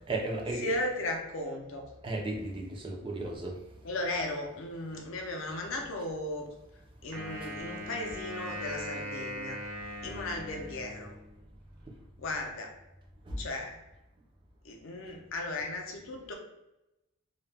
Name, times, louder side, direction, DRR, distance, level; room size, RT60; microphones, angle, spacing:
voice 1, 0.1-0.8 2.0-3.5 13.3-13.4, right 2 dB, 20° right, 0 dB, 0.3 m, -34 dB
voice 2, 0.6-1.9 3.8-6.5 7.0-9.6 10.0-11.1 12.2-12.7 13.4-13.8 14.6-16.3, left 2 dB, 60° left, 2 dB, 0.5 m, -36 dB
Wind instrument woodwind instrument, 7.1-11.4, equal, 90° right, 0.6 m, -40 dB
2.2 x 2.0 x 3.3 m, 0.92 s
head